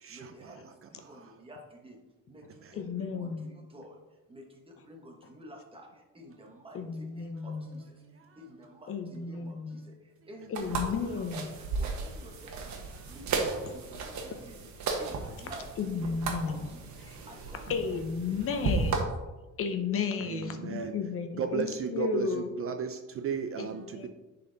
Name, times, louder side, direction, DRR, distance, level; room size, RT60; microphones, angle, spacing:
voice 1, 0.1-2.0 2.3-4.0 4.3-8.0 8.4-14.7 15.0-16.2 16.5-17.9 18.3-18.7, right 1 dB, 15° right, 1 dB, 1.1 m, -51 dB
voice 2, 2.7-3.5 6.7-7.8 8.9-9.8 10.5-11.5 15.8-16.7 17.1-17.2 17.7-19.0 19.6-22.5 23.6-24.1, left 5 dB, 45° left, 6 dB, 0.7 m, -33 dB
sound 1, 10.5-19.0, right 4 dB, 60° right, 1.3 m, -35 dB
voice 3, 20.3-20.9 21.4-24.1, right 6 dB, 45° right, 7 dB, 0.5 m, -34 dB
10.0 x 4.2 x 3.9 m, 1.1 s
cardioid pair, 170°, 32 cm